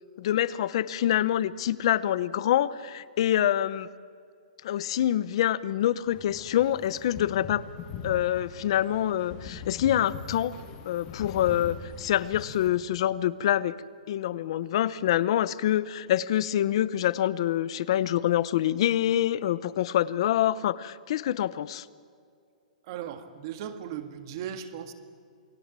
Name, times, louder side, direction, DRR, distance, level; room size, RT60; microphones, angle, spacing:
voice 1, 0.2-3.9 4.6-7.6 8.0-10.5 10.9-13.7 14.1-21.9, left 12 dB, 40° left, 17 dB, 0.8 m, -26 dB
sound 1, 6.1-12.7, left 5 dB, 25° left, 1.8 m, -41 dB
voice 2, 22.8-24.9, right 9 dB, 35° right, 9 dB, 1.8 m, -37 dB
29.0 x 20.5 x 7.5 m, 2.4 s
hypercardioid pair, 175°, 4 cm